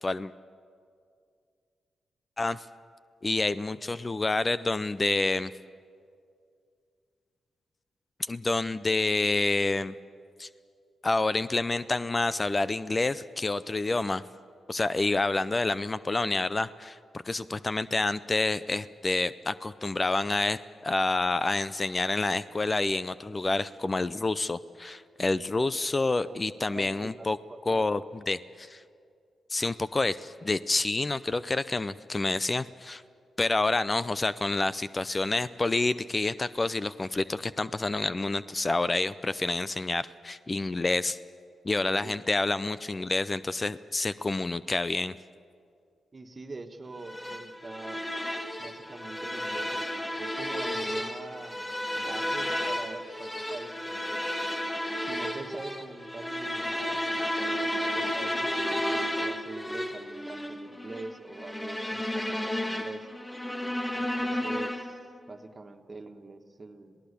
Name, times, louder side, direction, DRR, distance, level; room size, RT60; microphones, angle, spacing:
voice 1, 3.2-5.5 8.3-9.9 10.4-10.5 11.0-14.2 14.7-17.0 17.2-27.4 27.7-28.8 29.5-33.0 33.4-41.2 41.6-45.2, left 2 dB, 30° left, 15 dB, 0.6 m, -28 dB
voice 2, 26.7-27.6 42.0-42.2 46.1-48.0 48.6-51.6 52.0-54.2 55.0-57.0 57.2-63.1 63.9-65.0 65.3-67.0, right 3 dB, 35° right, 6 dB, 1.7 m, -44 dB
sound 1, 47.0-65.1, equal, 15° left, 1.6 m, -32 dB
26.5 x 17.5 x 7.0 m, 2.3 s
supercardioid pair, 50°, 0 cm